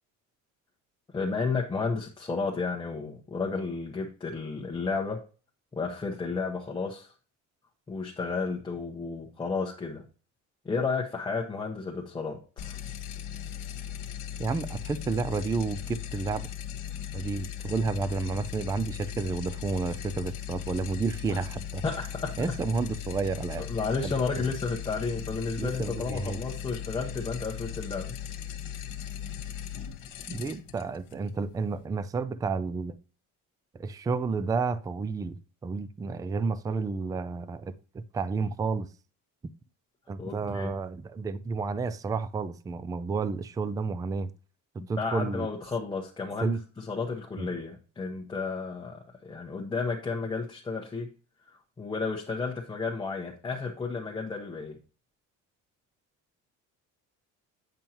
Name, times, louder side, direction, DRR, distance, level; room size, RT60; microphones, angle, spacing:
voice 1, 1.1-5.2 5.7-7.1 7.9-10.0 10.6-12.8 21.3-21.4 21.8-22.6 23.6-28.2 40.2-40.7 44.8-51.1 51.5-54.8, left 4 dB, 15° left, 1.0 m, -32 dB
sound 1, 12.6-31.9, left 9 dB, 70° left, 1.3 m, -38 dB
voice 2, 14.4-16.5 17.1-21.8 22.4-23.7 24.0-24.5 25.6-26.4 30.3-32.9 33.7-38.9 40.1-44.3 44.9-45.5 46.4-46.6 47.4-47.5, right 4 dB, 10° right, 0.3 m, -31 dB
9.0 x 5.4 x 2.9 m
cardioid pair, 150°, 32 cm